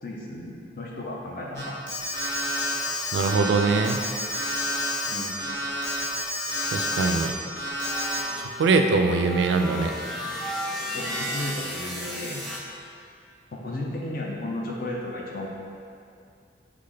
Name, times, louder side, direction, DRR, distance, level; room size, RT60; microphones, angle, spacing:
voice 1, 0.0-1.8 5.1-5.3 10.9-12.4 13.5-15.5, left 1 dB, 50° left, -2 dB, 0.6 m, -34 dB
Alarm, 1.5-7.3 7.6-8.2, left 1 dB, 80° left, 1.1 m, -29 dB
voice 2, 3.1-4.0 6.7-7.3 8.6-9.9, right 4 dB, 85° right, 5 dB, 0.3 m, -22 dB
sound 1, 7.8-12.6, equal, ahead, 0.3 m, -34 dB
3.5 x 3.2 x 3.8 m, 2.4 s
head